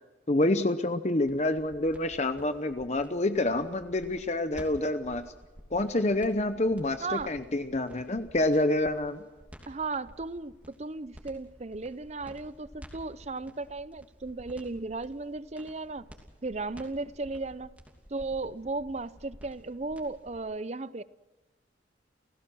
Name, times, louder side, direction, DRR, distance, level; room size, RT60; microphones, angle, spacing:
voice 1, 0.3-5.2 5.7-9.2, left 2 dB, 35° left, 0.8 m, -27 dB
sound 1, 1.3-20.4, equal, 10° right, 2.9 m, -52 dB
voice 2, 7.0-7.3 9.7-10.5 10.8-16.1 16.4-17.7 18.1-21.0, right 3 dB, 35° right, 0.6 m, -35 dB
29.5 x 16.5 x 6.2 m
head